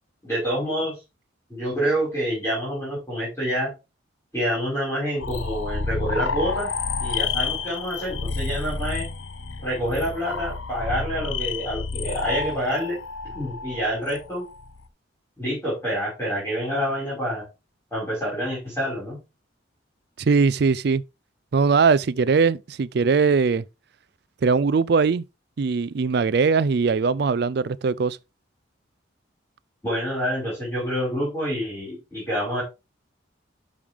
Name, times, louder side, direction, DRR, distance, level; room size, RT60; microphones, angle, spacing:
voice 1, 0.2-1.0 1.5-3.7 4.3-6.7 7.0-9.1 9.6-13.0 13.3-14.4 15.4-17.4 17.9-19.2 29.8-32.6, equal, 15° left, 5.4 m, -27 dB
sound 1, 5.2-14.8, left 4 dB, 85° left, 1.0 m, -30 dB
voice 2, 20.2-21.0 21.5-23.6 24.4-25.2 25.6-28.2, right 5 dB, 55° right, 0.4 m, -20 dB
12.0 x 5.0 x 3.6 m
head